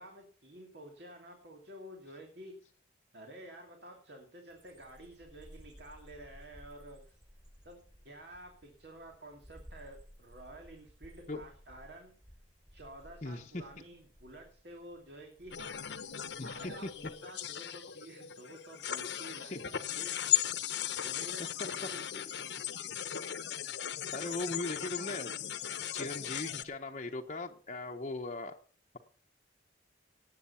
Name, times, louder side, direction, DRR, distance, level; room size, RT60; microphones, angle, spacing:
voice 1, 0.0-2.5 3.1-7.1 7.6-7.8 8.0-12.1 12.7-15.7 16.4-20.2 21.0-22.3, right 1 dB, 60° right, 2 dB, 2.7 m, -51 dB
sound 1, 4.5-17.1, equal, 25° right, 5.3 m, -57 dB
voice 2, 13.2-13.6 16.4-16.9 19.4-19.6 21.4-21.5 23.6-25.4 25.9-28.6, left 2 dB, 40° left, 2 dB, 0.9 m, -39 dB
sound 2, 15.5-26.6, left 10 dB, 70° left, 1.0 m, -37 dB
18.5 x 8.0 x 5.7 m, 0.43 s
head